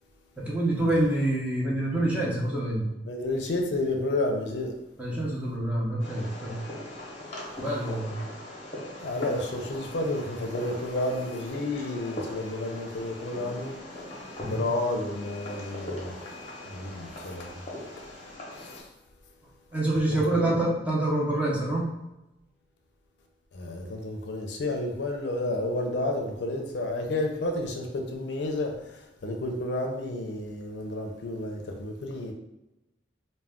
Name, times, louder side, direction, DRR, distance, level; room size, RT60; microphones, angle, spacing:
voice 1, 0.4-2.9 5.0-6.6 7.6-8.2 14.4-14.7 19.7-21.9, right 1 dB, 10° right, -5 dB, 0.6 m, -26 dB
voice 2, 3.0-4.8 9.0-13.8 14.5-16.2 16.7-17.6 18.5-18.8 20.1-20.6 23.5-32.3, left 2 dB, 70° left, 2 dB, 0.5 m, -31 dB
Fireworks, 6.0-18.8, left 1 dB, 35° left, 0.7 m, -41 dB
2.3 x 2.2 x 3.5 m, 0.96 s
head